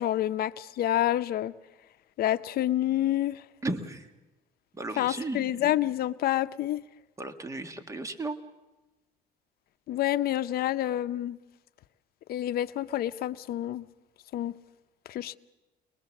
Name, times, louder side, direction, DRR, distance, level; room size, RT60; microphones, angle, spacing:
voice 1, 0.0-1.5 2.2-3.4 5.0-6.8 9.9-11.4 12.3-13.9 14.3-14.5 15.1-15.4, left 13 dB, 65° left, 0.7 m, -28 dB
voice 2, 3.6-4.1 4.7-5.5 7.2-8.4, right 2 dB, 20° right, 1.6 m, -34 dB
22.5 x 21.0 x 7.2 m
cardioid pair, 110°, 17 cm